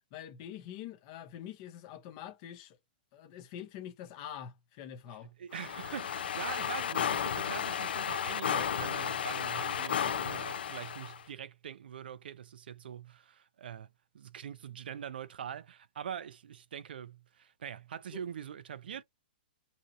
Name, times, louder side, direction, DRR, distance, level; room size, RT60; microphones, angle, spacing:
voice 1, 0.1-2.8 3.1-5.3 18.1-18.2, left 10 dB, 30° left, 0.6 m, -45 dB
voice 2, 5.1-13.9 14.1-19.0, right 8 dB, 75° right, 0.4 m, -43 dB
sound 1, 5.5-11.2, left 8 dB, 75° left, 0.5 m, -33 dB
2.7 x 2.7 x 2.5 m
hypercardioid pair, 170°, 5 cm